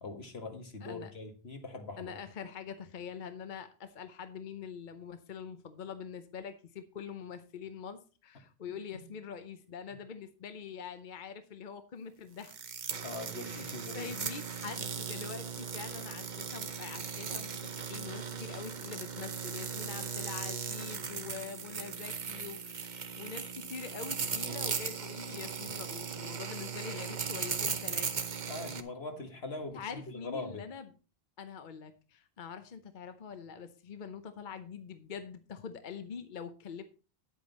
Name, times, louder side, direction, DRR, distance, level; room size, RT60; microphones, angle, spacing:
voice 1, 0.0-2.1 8.9-9.0 13.0-14.1 28.5-30.7, left 2 dB, 80° left, 5 dB, 2.0 m, -42 dB
voice 2, 0.8-1.1 2.0-12.6 13.3-28.3 29.7-30.9 31.4-36.8, left 6 dB, 50° left, 9 dB, 0.9 m, -44 dB
sound 1, 12.4-28.8, right 6 dB, 50° right, 0.9 m, -38 dB
9.8 x 8.4 x 4.1 m, 0.35 s
omnidirectional pair, 1.1 m